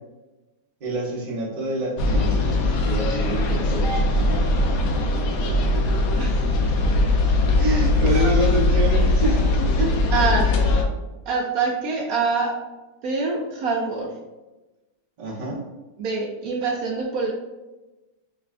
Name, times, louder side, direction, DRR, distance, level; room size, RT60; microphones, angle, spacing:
voice 1, 0.8-4.4 5.9-6.0 7.6-9.9 15.2-15.6, right 1 dB, 45° right, -5 dB, 0.5 m, -27 dB
sound 1, 2.0-10.8, left 2 dB, 75° left, 0.8 m, -20 dB
voice 2, 6.2-6.8 8.1-8.4 10.1-10.5 11.3-12.6 13.0-14.1 16.0-17.3, right 4 dB, 75° right, -1 dB, 0.8 m, -25 dB
4.9 x 2.2 x 2.4 m, 1.1 s
omnidirectional pair, 1.9 m